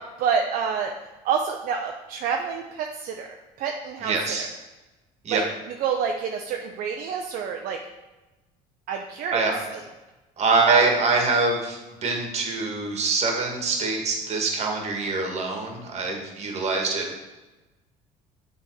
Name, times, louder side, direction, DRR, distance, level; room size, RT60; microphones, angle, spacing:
voice 1, 0.2-0.9 1.2-4.5 5.3-5.4 5.8-7.8 8.9-9.8, right 6 dB, 60° right, 3 dB, 0.6 m, -28 dB
voice 2, 4.0-4.5 5.2-5.4 9.3-9.6 10.4-17.2, right 3 dB, 45° right, 2 dB, 1.6 m, -24 dB
6.9 x 3.7 x 4.7 m, 1.1 s
supercardioid pair, 90°, 16 cm